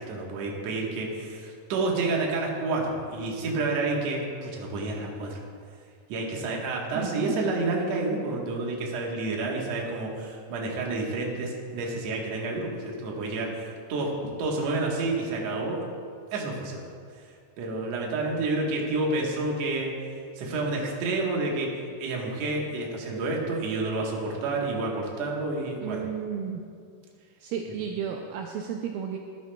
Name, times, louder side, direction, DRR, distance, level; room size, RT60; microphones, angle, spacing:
voice 1, 0.0-5.4 6.1-14.1 14.4-15.8 16.3-16.9 17.6-19.9 20.4-21.7 22.0-26.0, right 2 dB, 60° right, -1 dB, 2.0 m, -29 dB
voice 2, 7.0-7.4 25.8-26.6 27.4-29.2, right 8 dB, 80° right, 2 dB, 2.2 m, -33 dB
13.0 x 12.0 x 2.2 m, 2.2 s
omnidirectional pair, 4.4 m